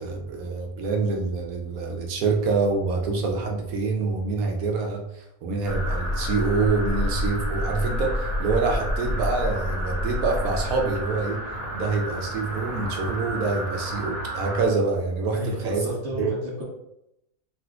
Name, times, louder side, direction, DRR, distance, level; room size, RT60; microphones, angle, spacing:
voice 1, 0.0-11.4 11.7-15.8 16.2-16.4, right 4 dB, 80° right, 1 dB, 1.1 m, -26 dB
sound 1, 5.6-14.7, equal, 30° left, 0.9 m, -29 dB
voice 2, 15.3-16.6, equal, 55° right, -4 dB, 1.2 m, -32 dB
4.0 x 2.4 x 2.3 m, 0.83 s
omnidirectional pair, 1.5 m